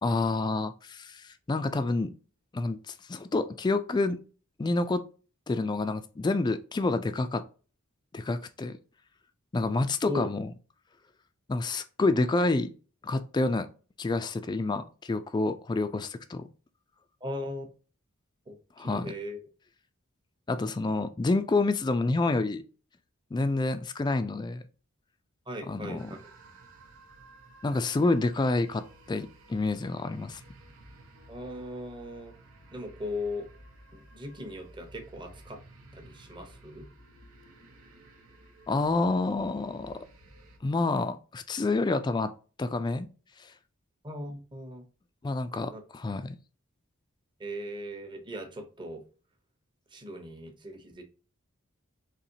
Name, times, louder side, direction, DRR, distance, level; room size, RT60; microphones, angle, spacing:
voice 1, 0.0-2.1 2.5-4.2 4.6-5.0 5.5-7.4 8.1-8.7 9.5-10.5 11.5-12.7 13.0-13.7 14.0-16.5 18.8-19.1 20.5-22.6 23.3-24.6 25.7-26.1 27.6-30.4 38.7-40.0 40.6-42.3 42.6-43.1 43.4-43.5 45.2-46.4, left 3 dB, 20° left, 0.3 m, -28 dB
voice 2, 17.2-17.6 18.5-18.6 18.8-19.4 20.9-21.0 25.5-26.0 31.3-32.3 32.7-33.5 33.9-35.6 35.9-36.9 44.0-44.8 45.7-45.8 47.4-49.0 49.9-51.0, left 1 dB, 20° right, 0.8 m, -38 dB
sound 1, 26.0-40.6, right 1 dB, 85° right, 0.9 m, -54 dB
4.1 x 2.9 x 2.7 m
head